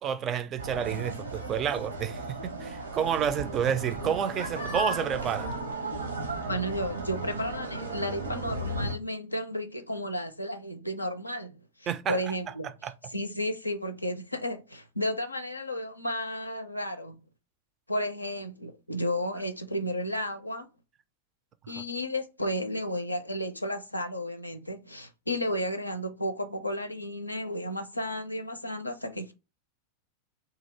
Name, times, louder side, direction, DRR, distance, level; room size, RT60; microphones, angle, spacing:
voice 1, 0.0-5.5 11.9-12.2 12.8-12.9, right 8 dB, 30° right, 0.4 m, -30 dB
sound 1, 0.6-8.9, right 2 dB, 80° right, 1.0 m, -35 dB
voice 2, 6.5-12.7 13.1-17.1 17.9-20.7 21.7-29.3, equal, 85° left, 0.4 m, -33 dB
2.8 x 2.8 x 4.0 m
figure-of-eight pair, 90°, 0 cm